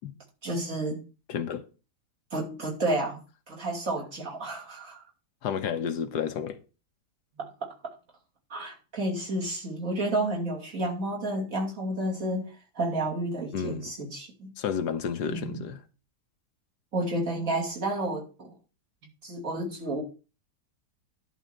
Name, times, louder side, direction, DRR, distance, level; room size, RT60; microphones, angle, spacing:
voice 1, 0.4-1.0 2.3-3.2 3.5-5.0 7.4-7.7 8.5-14.5 15.2-15.6 16.9-18.5 19.2-20.0, right 1 dB, 55° right, 3.1 m, -31 dB
voice 2, 1.3-1.6 5.4-6.6 13.5-13.9 14.6-15.8, left 7 dB, 80° left, 1.5 m, -31 dB
11.0 x 4.1 x 7.7 m
omnidirectional pair, 1.8 m